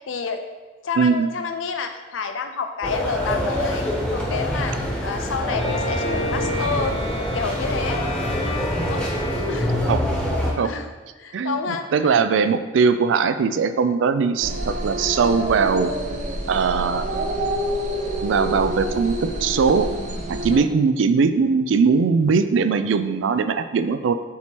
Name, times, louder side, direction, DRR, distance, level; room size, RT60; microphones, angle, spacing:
voice 1, 0.1-0.4 0.8-8.0 8.8-9.1 9.5-9.7 10.6-10.9 11.2-12.2 20.5-20.7, left 5 dB, 80° left, 6 dB, 0.5 m, -29 dB
voice 2, 1.0-1.3 9.9-10.0 10.6-10.7 11.3-15.9 16.5-17.1 18.2-19.9 20.3-24.1, right 5 dB, 75° right, 10 dB, 0.4 m, -20 dB
sound 1, 2.8-10.5, equal, 5° left, 1.0 m, -25 dB
Bowed string instrument, 5.5-9.9, left 1 dB, 30° left, 0.6 m, -31 dB
sound 2, 14.4-20.6, right 1 dB, 40° right, 0.7 m, -27 dB
7.3 x 3.0 x 4.5 m, 1.3 s
head